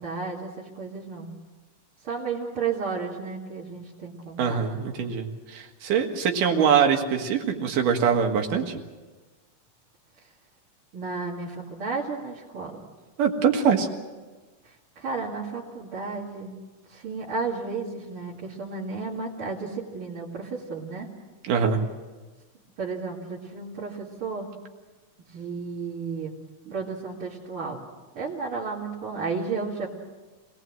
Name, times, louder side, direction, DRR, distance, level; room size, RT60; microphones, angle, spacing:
voice 1, 0.0-1.3 2.0-4.6 10.9-12.8 15.0-16.5 16.9-21.1 22.8-24.5 25.3-26.3 26.7-27.8 28.2-29.9, right 4 dB, 45° right, -7 dB, 3.0 m, -33 dB
voice 2, 4.4-8.8 13.2-13.9 21.4-21.8 26.7-26.8, right 7 dB, 85° right, 4 dB, 3.3 m, -23 dB
26.0 x 18.5 x 7.6 m, 1.3 s
omnidirectional pair, 3.7 m